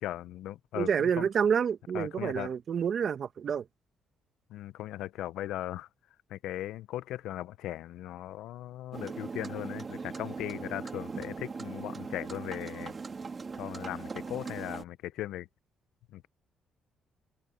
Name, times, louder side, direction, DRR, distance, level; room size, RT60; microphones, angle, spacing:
voice 1, 0.0-1.3 1.9-2.5 4.5-5.9 6.3-13.0 13.6-15.5 16.1-16.3, left 14 dB, 85° left, 0.8 m, -38 dB
voice 2, 0.7-3.6, right 7 dB, 50° right, 1.4 m, -28 dB
sound 1, 8.9-14.8, right 4 dB, 35° right, 1.9 m, -39 dB
cardioid pair, 100°, 0 cm